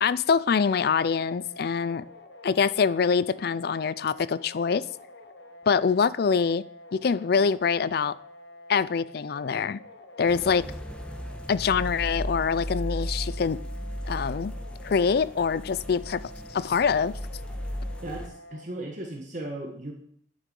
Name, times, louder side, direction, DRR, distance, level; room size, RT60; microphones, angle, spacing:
voice 1, 0.0-2.0 2.4-4.8 5.7-6.6 6.9-8.2 8.7-9.8 10.2-10.7 11.5-13.6 14.1-14.5 14.8-16.2 16.5-17.1, left 6 dB, 60° left, 18 dB, 0.4 m, -24 dB
sound 1, 0.6-18.6, left 1 dB, 80° left, 1.3 m, -48 dB
sound 2, 10.3-18.3, equal, 5° left, 1.2 m, -36 dB
voice 2, 18.0-19.9, right 1 dB, 45° right, 0 dB, 1.6 m, -36 dB
10.5 x 7.2 x 5.3 m, 0.63 s
head